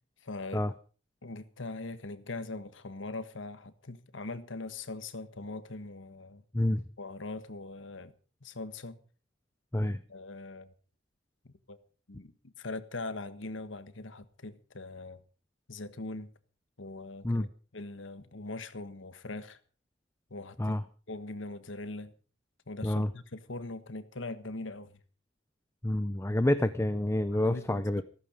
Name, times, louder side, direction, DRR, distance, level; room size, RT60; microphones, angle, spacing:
voice 1, 0.2-0.6 1.2-6.4 7.0-8.1 8.4-9.0 10.1-10.7 11.4-11.8 12.1-15.2 15.7-16.3 16.8-17.5 17.7-19.6 20.3-20.8 21.1-22.1 22.7-24.9 27.4-28.0, left 2 dB, 85° left, 1.4 m, -41 dB
voice 2, 25.8-28.0, left 1 dB, 15° left, 0.6 m, -28 dB
15.0 x 14.5 x 5.1 m
head